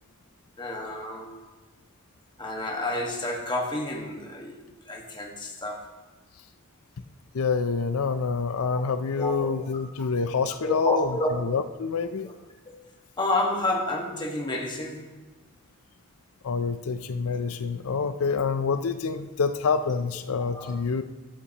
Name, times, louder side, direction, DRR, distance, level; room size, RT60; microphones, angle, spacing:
voice 1, 0.6-1.4 2.4-4.6 4.9-5.9 9.2-9.3 10.6-11.3 12.2-12.3 13.2-15.1 20.5-20.8, left 1 dB, 20° left, 0 dB, 1.5 m, -29 dB
voice 2, 7.3-11.1 11.4-12.3 16.4-21.0, left 5 dB, 70° left, 11 dB, 0.5 m, -27 dB
13.5 x 11.0 x 2.9 m, 1.2 s
head